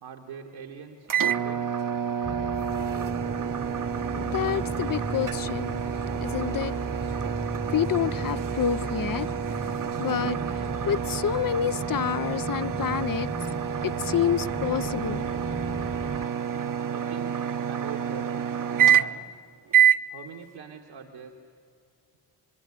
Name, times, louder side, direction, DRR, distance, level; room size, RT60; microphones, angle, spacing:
voice 1, 0.0-1.6 16.8-19.4 20.1-21.4, right 7 dB, 80° right, 1.7 m, -43 dB
sound 1, 1.1-19.3 19.7-20.0, right 9 dB, 45° right, 0.8 m, -28 dB
sound 2, 2.2-16.3, right 2 dB, 10° right, 0.9 m, -36 dB
voice 2, 3.9-5.8 6.1-6.9 7.7-9.7 10.0-10.4 10.9-13.3 13.8-15.3, left 9 dB, 45° left, 0.7 m, -28 dB
26.0 x 22.0 x 9.8 m
supercardioid pair, 40°, 46 cm